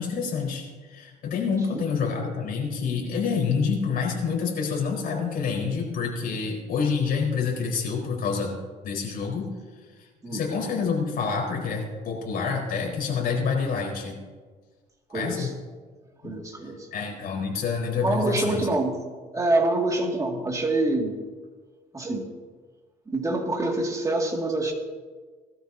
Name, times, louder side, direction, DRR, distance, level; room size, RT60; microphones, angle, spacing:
voice 1, 0.0-8.6 8.8-9.5 10.3-14.2 15.1-15.5 16.2-16.3 16.9-18.7, left 5 dB, 60° left, -1 dB, 4.4 m, -27 dB
voice 2, 15.1-15.5 16.2-16.9 18.0-19.0 19.3-21.1 21.9-22.3 23.1-24.7, right 2 dB, 20° right, 1 dB, 2.3 m, -26 dB
20.0 x 13.0 x 2.8 m, 1.5 s
cardioid pair, 110°, 17 cm